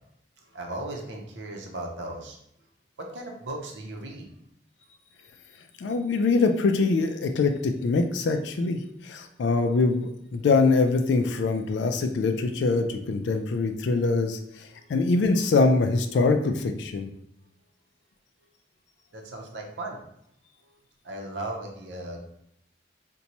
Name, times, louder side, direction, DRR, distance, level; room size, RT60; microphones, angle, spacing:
voice 1, 0.4-2.4 3.1-4.3 14.7-14.9 19.1-20.0 20.6-20.8 21.0-22.2, right 2 dB, 80° right, 1 dB, 0.7 m, -37 dB
voice 2, 5.8-17.1, left 3 dB, 70° left, 6 dB, 0.3 m, -24 dB
4.0 x 2.2 x 2.9 m, 0.75 s
head